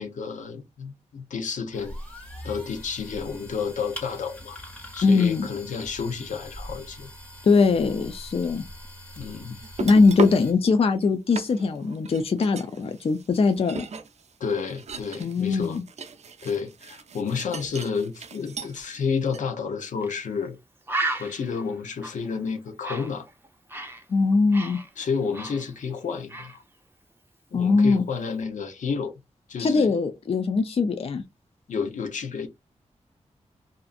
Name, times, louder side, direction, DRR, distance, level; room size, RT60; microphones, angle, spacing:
voice 1, 0.0-2.0 2.4-4.6 4.9-7.1 9.2-9.6 14.4-15.8 16.4-20.6 21.2-23.3 25.0-26.6 27.5-29.1 29.5-30.0 31.7-32.5, left 5 dB, 90° left, 0.7 m, -30 dB
sound 1, 1.7-10.5, equal, 10° left, 1.2 m, -42 dB
voice 2, 5.0-5.5 7.4-8.6 9.8-13.9 15.2-15.8 24.1-24.8 27.5-28.0 29.6-31.2, left 4 dB, 50° left, 0.4 m, -21 dB
sound 2, 9.6-10.4 11.0-11.1 11.3-19.0 19.3-19.4, right 4 dB, 65° right, 0.4 m, -36 dB
Bird, 20.0-20.2 20.5-20.6 20.9-24.0 24.3-26.0 26.3-26.6, right 2 dB, 20° right, 0.7 m, -34 dB
2.6 x 2.4 x 2.4 m
cardioid pair, 70°, 12 cm